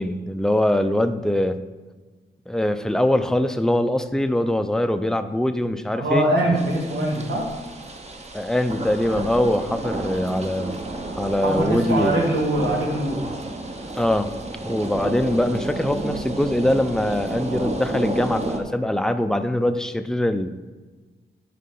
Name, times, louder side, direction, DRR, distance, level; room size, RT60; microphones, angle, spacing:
voice 1, 0.0-1.6 2.5-6.3 8.3-10.8 11.2-12.2 14.0-14.3 14.6-20.5, left 1 dB, 5° left, 9 dB, 0.5 m, -22 dB
voice 2, 6.0-7.5 11.4-13.3, right 1 dB, 85° right, -3 dB, 2.2 m, -22 dB
sound 1, 6.6-18.6, right 2 dB, 35° right, 1.2 m, -31 dB
11.0 x 4.2 x 5.5 m, 1.3 s
cardioid pair, 75°, 18 cm